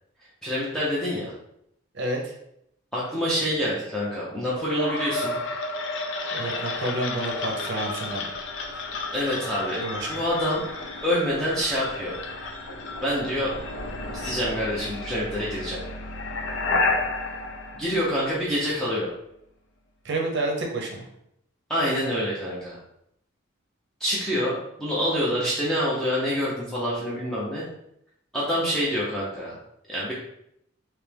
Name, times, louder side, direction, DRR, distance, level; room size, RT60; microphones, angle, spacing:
voice 1, 0.4-1.3 2.9-5.4 9.1-9.8 10.1-10.6 11.0-12.2 13.0-13.5 14.1-15.8 17.7-19.1 21.7-22.8 24.0-27.6 28.3-29.6 29.9-30.1, equal, 5° left, -8 dB, 0.7 m, -26 dB
voice 2, 1.9-2.3 6.3-8.2 9.8-10.2 20.0-21.0, right 2 dB, 55° right, 1 dB, 0.7 m, -29 dB
Space Cows, 4.8-18.7, left 3 dB, 60° left, 0.5 m, -31 dB
3.3 x 2.9 x 3.4 m, 0.76 s
head